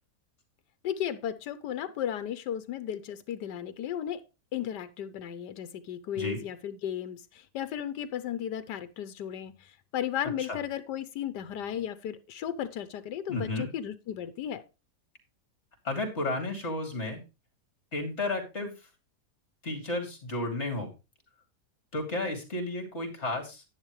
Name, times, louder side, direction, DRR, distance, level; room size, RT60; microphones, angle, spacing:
voice 1, 0.8-4.2 4.5-14.6, left 10 dB, 90° left, 1.4 m, -35 dB
voice 2, 13.3-13.7 15.8-17.2 17.9-18.7 19.6-20.9 21.9-23.6, left 2 dB, 40° left, 3.1 m, -32 dB
10.5 x 9.8 x 3.1 m
omnidirectional pair, 1.8 m